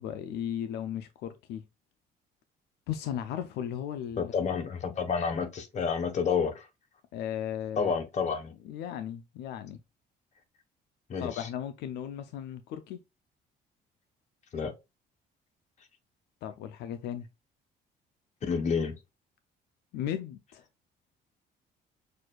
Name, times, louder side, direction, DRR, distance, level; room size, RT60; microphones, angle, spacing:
voice 1, 0.0-1.6 2.9-4.5 7.1-7.9 8.6-9.8 11.2-13.0 16.4-17.3 19.9-20.6, left 10 dB, 80° left, 0.4 m, -36 dB
voice 2, 4.2-6.7 7.8-8.5 11.1-11.5 14.5-14.7 18.4-18.9, left 6 dB, 45° left, 1.0 m, -29 dB
6.2 x 2.4 x 2.3 m
cardioid pair, 110°, 17 cm